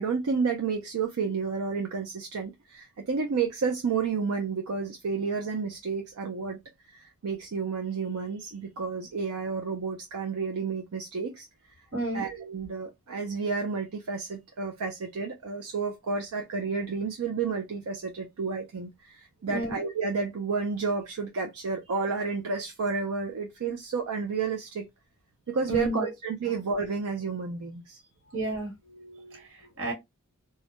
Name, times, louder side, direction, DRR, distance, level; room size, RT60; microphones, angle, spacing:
voice 1, 0.0-6.6 6.9-11.5 12.1-24.9 25.5-28.0, right 5 dB, 80° right, 0.5 m, -31 dB
voice 2, 25.7-26.1 28.3-29.9, right 1 dB, 60° right, 1.5 m, -32 dB
2.3 x 2.1 x 2.8 m
head